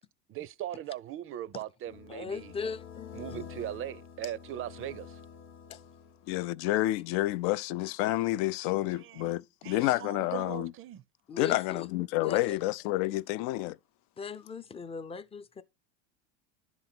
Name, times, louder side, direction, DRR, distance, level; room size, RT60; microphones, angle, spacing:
voice 1, 0.3-2.5 3.1-5.2 9.0-9.3 9.6-11.0, right 12 dB, 35° right, 0.5 m, -39 dB
sound 1, 1.8-6.5, left 7 dB, 30° left, 1.0 m, -48 dB
voice 2, 2.1-3.5 5.7-5.8 11.3-11.9 12.2-12.6 14.2-15.6, left 5 dB, 15° left, 0.5 m, -39 dB
voice 3, 6.3-10.7 11.4-13.8, left 17 dB, 60° left, 0.5 m, -29 dB
10.5 x 4.0 x 5.9 m
supercardioid pair, 105°, 38 cm